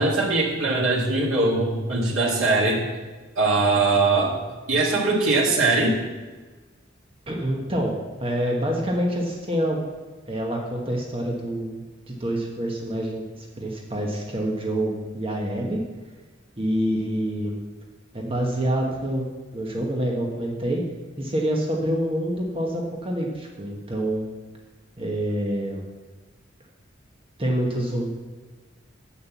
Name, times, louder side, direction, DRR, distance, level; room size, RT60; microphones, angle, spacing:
voice 1, 0.0-2.9 3.4-4.4 4.7-6.0, right 3 dB, 90° right, -4 dB, 2.0 m, -21 dB
voice 2, 7.3-7.9 8.2-9.8 10.3-11.8 12.1-15.8 16.6-17.5 18.1-19.3 19.5-20.8 21.2-24.3 25.0-25.8 27.4-28.1, right 1 dB, 25° right, -1 dB, 1.2 m, -26 dB
7.5 x 7.0 x 7.2 m, 1.3 s
head